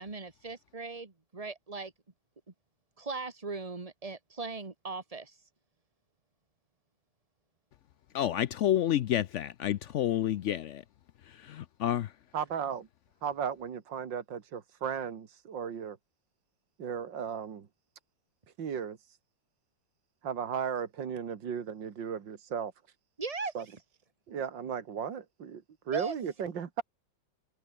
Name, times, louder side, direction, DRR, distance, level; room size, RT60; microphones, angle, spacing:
voice 1, 0.0-1.9 3.0-5.3 23.2-23.5 25.9-26.1, right 3 dB, 20° right, 2.0 m, -38 dB
voice 2, 8.1-10.8 11.5-12.1, left 11 dB, 80° left, 0.6 m, -29 dB
voice 3, 12.3-12.9 13.2-16.0 16.8-17.7 18.6-19.0 20.2-22.7 23.5-23.7 24.3-26.8, right 7 dB, 80° right, 2.5 m, -35 dB
omnidirectional pair, 2.0 m